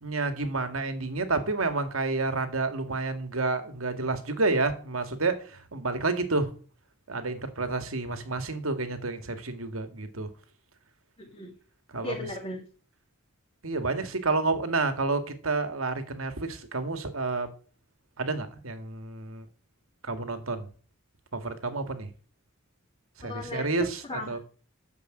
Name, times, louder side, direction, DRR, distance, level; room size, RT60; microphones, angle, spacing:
voice 1, 0.0-6.5 7.1-10.3 11.9-12.3 13.6-17.5 18.2-19.5 20.0-20.7 21.3-22.1 23.2-24.4, right 3 dB, 85° right, 2.1 m, -30 dB
voice 2, 11.2-11.5 12.0-12.6 23.2-24.4, left 2 dB, 25° left, 2.3 m, -37 dB
10.0 x 7.4 x 7.8 m
head